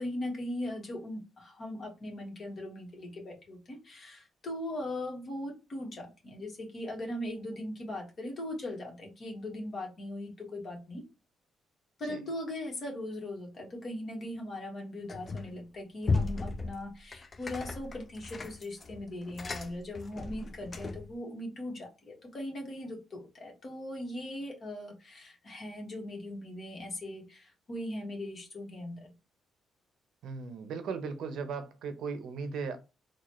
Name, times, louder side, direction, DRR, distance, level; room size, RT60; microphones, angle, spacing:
voice 1, 0.0-11.0 12.0-29.1, left 1 dB, 50° left, 1.5 m, -39 dB
sound 1, 15.1-15.6 16.0-21.1, left 3 dB, 35° left, 0.5 m, -35 dB
voice 2, 30.2-32.8, right 5 dB, 75° right, 0.7 m, -37 dB
3.9 x 2.4 x 3.0 m
cardioid pair, 90°, 0 cm